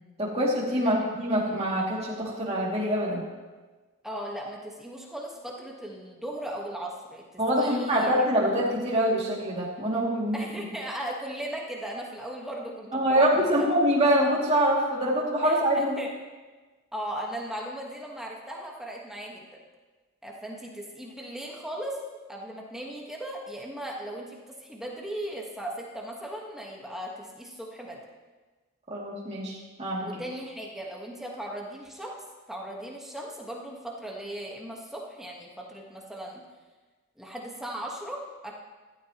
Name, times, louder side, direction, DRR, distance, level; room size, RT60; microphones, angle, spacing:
voice 1, 0.2-3.3 7.4-10.4 12.9-16.0 28.9-30.1, equal, 30° right, -5 dB, 2.6 m, -25 dB
voice 2, 4.0-8.4 10.3-13.7 15.4-16.1 16.9-19.6 20.2-22.0 22.3-28.0 30.0-32.2 32.5-36.4 37.2-38.5, right 1 dB, ahead, -2 dB, 1.4 m, -38 dB
15.0 x 13.0 x 3.0 m, 1.3 s
head